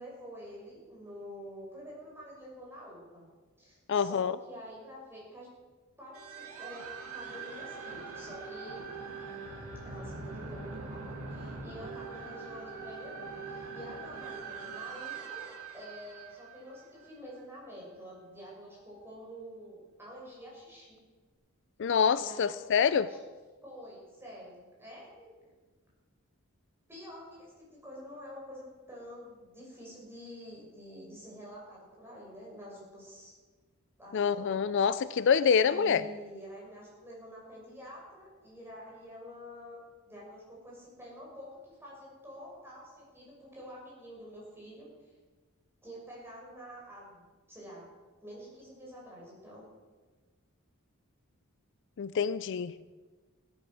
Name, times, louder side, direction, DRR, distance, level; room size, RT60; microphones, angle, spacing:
voice 1, 0.0-3.2 3.6-5.5 6.0-8.8 9.8-11.0 11.3-21.0 22.2-23.2 23.6-25.3 26.9-27.5 27.8-33.3 34.0-34.6 35.7-39.8 40.1-45.1 45.8-47.8 48.2-49.7, equal, 10° right, -5 dB, 6.0 m, -48 dB
voice 2, 3.9-4.4 21.8-23.1 34.1-36.0 52.0-52.7, left 6 dB, 55° left, 15 dB, 0.4 m, -26 dB
sound 1, 6.1-17.4, right 4 dB, 85° right, 2.4 m, -43 dB
16.0 x 10.5 x 6.4 m, 1.3 s
head